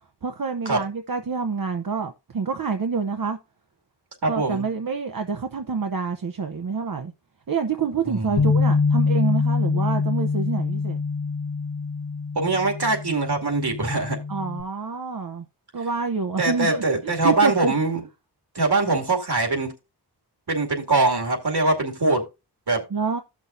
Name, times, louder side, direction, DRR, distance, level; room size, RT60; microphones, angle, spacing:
voice 1, 0.2-3.4 4.3-7.1 7.5-11.0 14.3-15.4 15.7-17.7 22.9-23.2, right 5 dB, 55° right, 0.8 m, -27 dB
voice 2, 4.2-4.7 8.1-8.6 12.4-14.2 16.4-18.0 18.5-19.7 20.5-22.2 22.7-22.8, right 2 dB, 70° right, 2.5 m, -23 dB
Bass guitar, 8.4-14.6, left 4 dB, 70° left, 1.1 m, -24 dB
15.5 x 6.2 x 2.6 m
wide cardioid pair, 70°, 40 cm